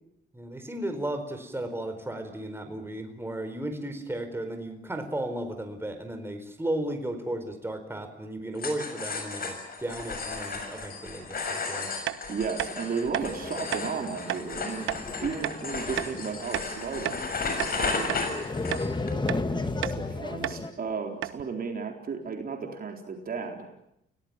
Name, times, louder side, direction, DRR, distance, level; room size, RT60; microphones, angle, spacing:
voice 1, 0.3-11.9, right 1 dB, 10° right, 6 dB, 4.6 m, -34 dB
sound 1, 8.6-19.1, left 4 dB, 50° left, 6.9 m, -34 dB
sound 2, 12.1-12.2 12.6-12.7 13.1-13.3 13.7-13.9 14.3-14.4 14.9-15.0 15.4-15.6 16.0-16.1 16.5-17.3 17.6-17.8 18.1-18.2 18.7-18.9 19.3-19.4 19.8-20.0 20.4-20.6 20.9-21.0 21.2-21.4, right 13 dB, 85° right, 1.1 m, -32 dB
voice 2, 12.3-14.9 15.2-17.2 17.7-18.2 19.1-19.3 19.6-23.7, right 5 dB, 45° right, 3 dB, 4.0 m, -34 dB
sound 3, 13.2-20.7, left 3 dB, 25° left, 2.0 m, -35 dB
29.5 x 18.0 x 9.0 m, 0.81 s
cardioid pair, 90°, 20 cm